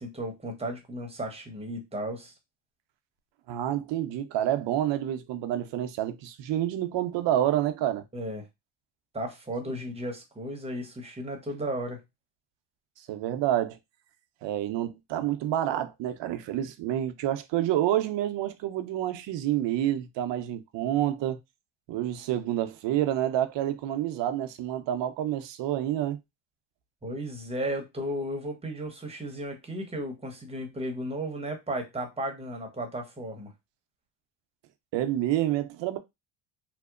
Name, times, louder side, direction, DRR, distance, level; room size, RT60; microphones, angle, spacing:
voice 1, 0.0-2.3 8.1-8.5 9.1-12.0 27.0-33.5, right 1 dB, 15° right, 0.9 m, -34 dB
voice 2, 3.5-8.0 13.1-13.8 14.4-21.4 21.9-26.2 34.9-36.0, right 12 dB, 65° right, 0.6 m, -28 dB
2.8 x 2.0 x 2.4 m
supercardioid pair, 80°, 47 cm